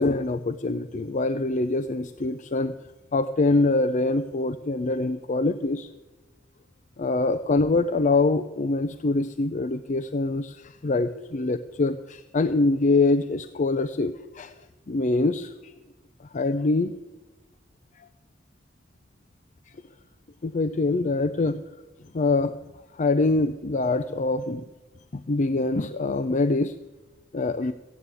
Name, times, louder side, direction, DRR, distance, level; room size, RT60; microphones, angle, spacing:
voice 1, 0.0-2.7 3.1-5.9 7.0-14.5 14.9-15.7 16.3-16.9 18.0-18.1 20.4-21.6 22.1-22.5 22.9-24.7 25.1-26.7 27.3-27.7, left 3 dB, 40° left, 10 dB, 0.5 m, -24 dB
15.5 x 9.3 x 8.3 m, 1.1 s
head